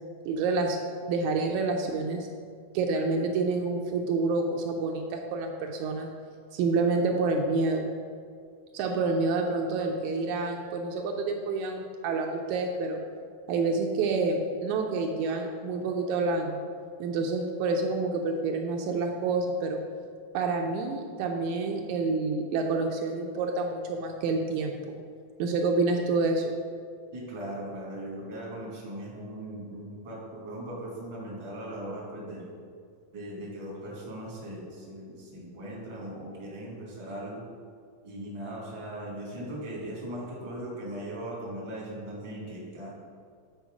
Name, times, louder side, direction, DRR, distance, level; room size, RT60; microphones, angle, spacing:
voice 1, 0.3-0.8 1.1-2.3 2.7-6.1 6.5-7.8 8.7-13.0 13.5-16.6 17.0-19.8 20.3-25.0 25.4-26.5, right 3 dB, 80° right, 2 dB, 1.8 m, -28 dB
voice 2, 27.1-32.5 33.1-37.4 38.0-42.9, right 1 dB, 20° right, -4 dB, 0.8 m, -39 dB
8.1 x 4.5 x 4.9 m, 2.2 s
omnidirectional pair, 3.6 m